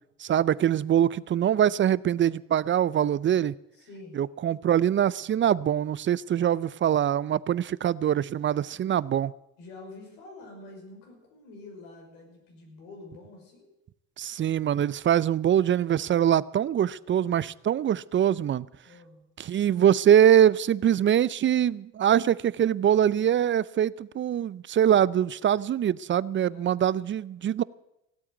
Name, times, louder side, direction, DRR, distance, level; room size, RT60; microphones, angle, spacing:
voice 1, 0.2-3.5 4.1-9.3 14.2-18.7 19.4-27.6, right 10 dB, 35° right, 21 dB, 0.5 m, -23 dB
voice 2, 3.7-4.2 8.4-8.8 9.6-13.7 18.8-19.2 26.4-27.0, left 2 dB, 80° left, 1 dB, 5.8 m, -47 dB
16.5 x 8.5 x 9.3 m, 0.88 s
hypercardioid pair, 70°, 36 cm